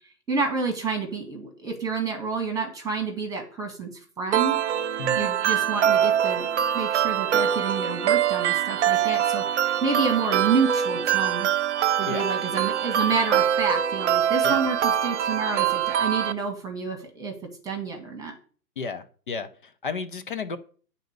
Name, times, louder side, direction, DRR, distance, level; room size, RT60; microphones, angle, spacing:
voice 1, 0.3-3.9 4.2-6.5 6.7-11.5 12.0-17.3 17.6-18.3, right 5 dB, 5° right, 1.5 m, -29 dB
sound 1, 4.3-16.3, right 9 dB, 45° right, 0.6 m, -24 dB
voice 2, 18.8-20.6, left 4 dB, 35° left, 0.4 m, -33 dB
8.8 x 4.0 x 6.6 m
hypercardioid pair, 135°, 49 cm